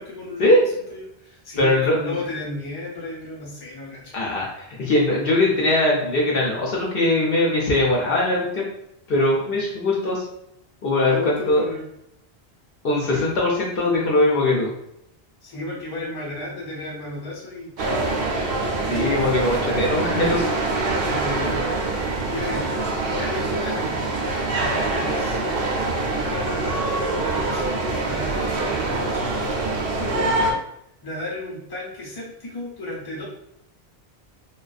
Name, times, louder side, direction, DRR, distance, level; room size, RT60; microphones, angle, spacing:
voice 1, 0.0-4.5 11.1-11.9 15.4-18.7 21.0-21.7 22.3-22.7 23.1-23.9 24.6-25.4 26.1-29.3 30.0-30.4 31.0-33.2, left 2 dB, 25° left, -5 dB, 0.7 m, -34 dB
voice 2, 1.6-2.1 4.1-8.7 9.1-10.2 10.8-11.2 11.5-11.6 12.8-14.7 18.9-20.6, left 2 dB, 65° left, -3 dB, 0.8 m, -21 dB
sound 1, 17.8-30.5, right 2 dB, 70° right, 0.7 m, -24 dB
2.4 x 2.2 x 2.4 m, 0.78 s
omnidirectional pair, 1.1 m